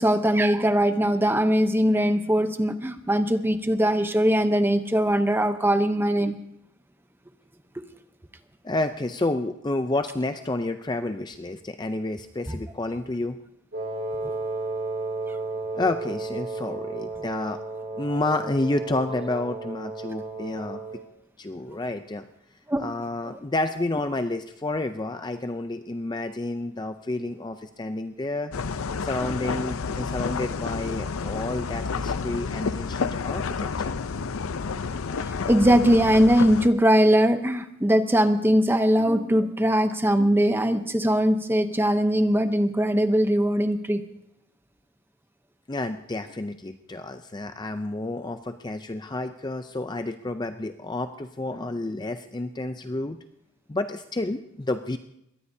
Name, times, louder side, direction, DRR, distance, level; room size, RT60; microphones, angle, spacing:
voice 1, 0.0-6.4 12.5-12.6 14.2-14.4 22.7-22.8 35.2-44.0, equal, 10° right, 9 dB, 0.7 m, -21 dB
voice 2, 8.6-13.4 15.7-17.6 18.0-20.8 21.4-22.2 22.8-28.5 29.0-33.9 45.7-53.2 53.7-55.0, left 2 dB, 20° left, 8 dB, 0.4 m, -30 dB
Wind instrument woodwind instrument, 13.7-21.0, right 3 dB, 50° right, 2.7 m, -33 dB
sound 1, 28.5-36.7, left 5 dB, 75° left, 0.6 m, -30 dB
22.5 x 18.0 x 2.7 m, 0.79 s
head